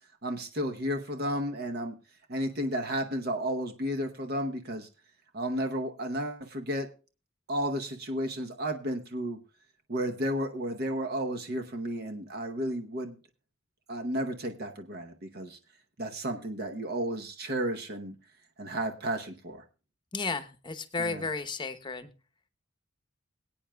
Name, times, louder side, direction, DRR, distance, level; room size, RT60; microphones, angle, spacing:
voice 1, 0.2-2.0 2.3-4.9 5.3-6.9 7.5-9.4 9.9-13.2 13.9-15.6 16.0-18.1 18.6-19.6 21.0-21.2, equal, 50° right, 5 dB, 0.9 m, -32 dB
voice 2, 20.1-22.1, left 4 dB, 20° left, 11 dB, 0.8 m, -33 dB
22.0 x 8.8 x 2.3 m, 0.33 s
head